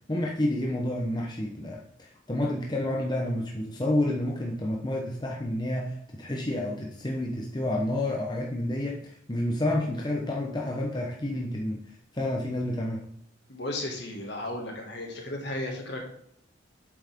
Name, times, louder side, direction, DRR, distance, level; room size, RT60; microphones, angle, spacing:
voice 1, 0.0-13.0, left 1 dB, 20° left, -1 dB, 0.9 m, -30 dB
voice 2, 13.5-16.0, left 1 dB, 55° left, 1 dB, 2.1 m, -34 dB
7.9 x 7.6 x 3.7 m, 0.69 s
head